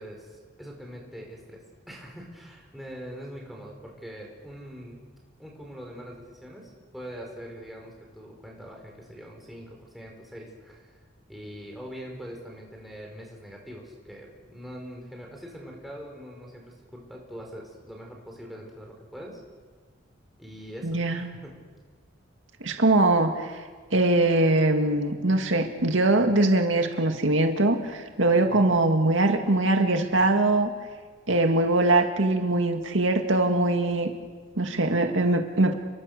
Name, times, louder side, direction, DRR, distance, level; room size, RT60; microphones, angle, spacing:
voice 1, 0.0-5.0 5.4-11.0 11.3-19.4 20.4-21.6 28.4-28.7, equal, ahead, -1 dB, 5.2 m, -43 dB
voice 2, 20.8-21.3 22.6-23.6 23.9-30.7 31.3-34.1 34.6-35.8, right 2 dB, 80° right, 4 dB, 2.2 m, -22 dB
30.0 x 23.5 x 6.8 m, 1.5 s
head